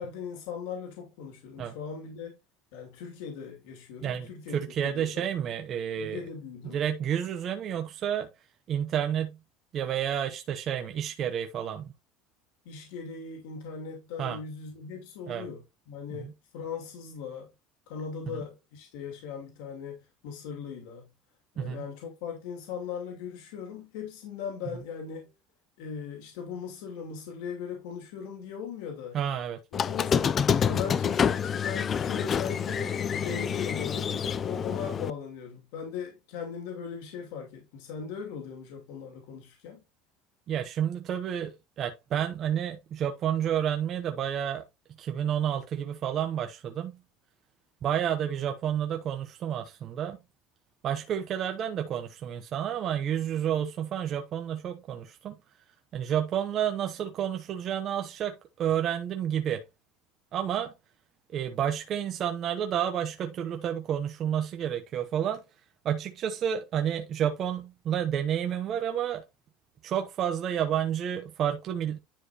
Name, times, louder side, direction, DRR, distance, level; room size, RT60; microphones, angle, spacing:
voice 1, 0.0-2.4 2.7-5.3 5.9-6.8 12.6-17.5 17.9-21.1 21.5-25.3 25.8-29.2 29.7-39.8, left 6 dB, 75° left, 2.6 m, -39 dB
voice 2, 4.0-6.2 6.7-8.3 8.7-9.4 9.7-11.9 14.2-14.4 15.3-15.5 16.2-16.3 21.6-21.9 29.1-29.6 40.5-44.6 45.0-47.0 47.8-50.2 50.8-55.4 55.9-59.6 60.3-60.7 61.3-65.4 65.8-69.2 69.8-72.0, right 9 dB, 35° right, 0.8 m, -30 dB
Squeak, 29.7-35.1, left 7 dB, 25° left, 0.4 m, -27 dB
10.5 x 5.0 x 2.9 m
cardioid pair, 165°, 0 cm